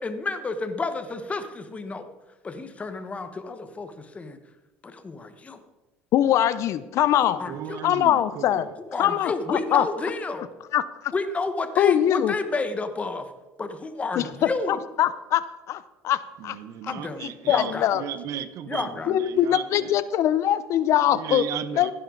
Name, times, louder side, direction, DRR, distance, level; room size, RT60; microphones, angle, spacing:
voice 1, 0.0-2.1 2.4-4.4 4.8-5.6 7.2-7.8 8.9-10.5 11.1-13.2 13.6-14.8 16.8-17.9 18.7-19.1, left 3 dB, 20° left, 1.3 m, -31 dB
voice 2, 6.1-7.4 7.8-8.6 9.0-9.9 10.7-11.1 11.8-12.3 14.1-15.4 15.7-16.6 17.2-18.0 19.1-21.4 21.8-21.9, left 11 dB, 55° left, 0.6 m, -22 dB
voice 3, 7.5-8.7 16.4-20.5 21.1-21.9, right 9 dB, 60° right, 0.9 m, -35 dB
15.5 x 11.0 x 4.0 m
supercardioid pair, 110°, 6 cm